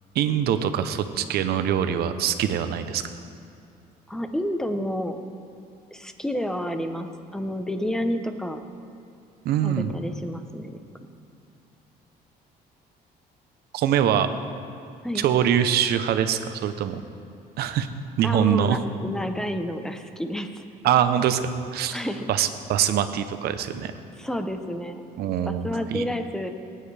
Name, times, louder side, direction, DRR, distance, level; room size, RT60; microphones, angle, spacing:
voice 1, 0.1-3.1 9.4-9.9 13.7-14.3 15.1-17.0 17.6-17.9 18.2-18.8 20.8-22.0 22.3-23.9 25.2-26.1, right 9 dB, 70° right, 10 dB, 0.8 m, -23 dB
voice 2, 4.1-5.2 5.9-8.6 9.6-10.8 15.0-15.3 18.2-20.6 21.9-22.3 24.2-25.0 25.3-26.5, equal, 5° left, 7 dB, 0.8 m, -30 dB
19.0 x 9.4 x 3.4 m, 2.6 s
cardioid pair, 110°, 17 cm